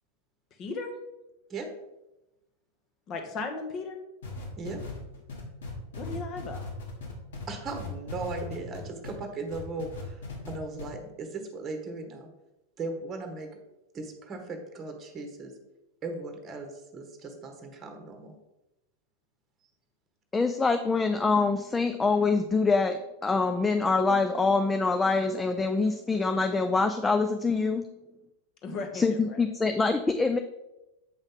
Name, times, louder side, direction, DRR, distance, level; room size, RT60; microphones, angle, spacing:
voice 1, 0.6-0.9 3.1-4.0 5.9-6.6 28.6-29.4, left 3 dB, 35° left, 6 dB, 1.2 m, -36 dB
sound 1, 4.2-9.2 9.5-10.5 10.8-10.9, left 3 dB, 65° left, 2.0 m, -38 dB
voice 2, 7.5-12.3 12.8-13.5 13.9-15.5 16.0-18.4, right 3 dB, 25° right, 5 dB, 1.2 m, -37 dB
voice 3, 20.3-27.9 28.9-30.4, left 4 dB, 10° left, 7 dB, 0.4 m, -25 dB
8.0 x 5.3 x 3.8 m, 0.96 s
figure-of-eight pair, 90°, 0 cm